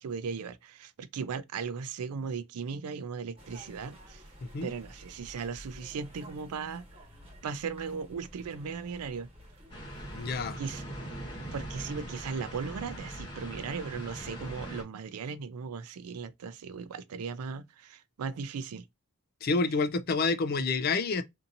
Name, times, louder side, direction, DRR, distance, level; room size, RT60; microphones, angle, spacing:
voice 1, 0.0-4.2 4.6-6.8 7.4-9.3 10.6-10.9 11.5-18.8, right 5 dB, 90° right, 0.4 m, -37 dB
sound 1, 3.4-10.4, equal, 25° right, 1.4 m, -52 dB
sound 2, 9.7-14.8, right 1 dB, 20° left, 1.1 m, -41 dB
voice 2, 10.1-10.6 19.4-21.2, left 4 dB, 45° left, 0.3 m, -28 dB
2.7 x 2.6 x 2.5 m
head